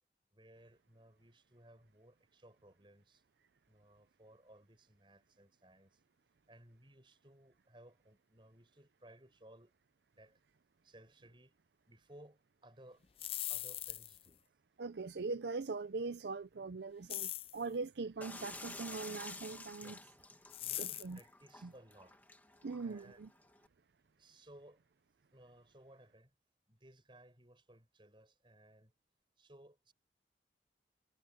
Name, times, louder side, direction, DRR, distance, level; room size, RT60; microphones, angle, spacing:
voice 1, 0.3-3.2 3.7-6.0 6.5-9.7 10.1-10.4 10.8-11.6 11.9-13.0 13.5-14.4 19.8-20.0 20.6-22.2 22.8-23.2 24.2-24.8 25.3-26.3 26.7-28.9 29.4-29.9, right 1 dB, 25° right, 6.2 m, -60 dB
sound 1, 13.0-14.3 17.1-17.6 20.5-21.2, left 13 dB, 30° left, 0.4 m, -41 dB
voice 2, 14.8-19.9 20.8-21.2 21.6-21.7 22.6-23.3, right 4 dB, 70° right, 0.5 m, -41 dB
sound 2, 18.2-23.7, left 2 dB, 10° left, 1.8 m, -51 dB
head